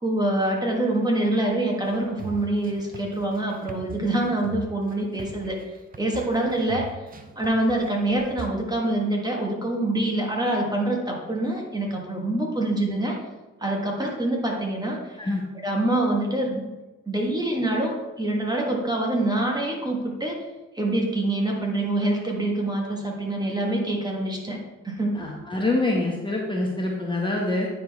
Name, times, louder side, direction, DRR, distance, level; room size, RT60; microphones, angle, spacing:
voice 1, 0.0-5.6 6.0-6.9 7.4-13.2 13.6-15.2 15.6-16.7 17.0-20.4 20.7-24.6 24.8-25.2, right 1 dB, 15° right, -1 dB, 1.6 m, -25 dB
sound 1, 1.8-8.5, right 3 dB, 30° right, 0.7 m, -41 dB
voice 2, 25.1-27.7, left 2 dB, 15° left, -2 dB, 1.1 m, -25 dB
9.3 x 4.3 x 3.5 m, 1.1 s
cardioid pair, 90°, 30 cm